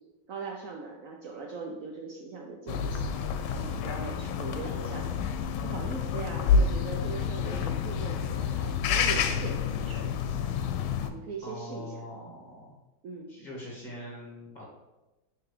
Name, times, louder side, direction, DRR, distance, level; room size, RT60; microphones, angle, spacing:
voice 1, 0.3-10.2 11.1-12.0 13.0-13.3, right 4 dB, 90° right, 1 dB, 0.7 m, -40 dB
sound 1, 2.7-11.1, left 6 dB, 80° left, 1.4 m, -29 dB
voice 2, 11.4-12.8 13.3-14.6, left 1 dB, 25° left, -4 dB, 1.6 m, -42 dB
5.9 x 3.6 x 4.9 m, 1.0 s
omnidirectional pair, 2.2 m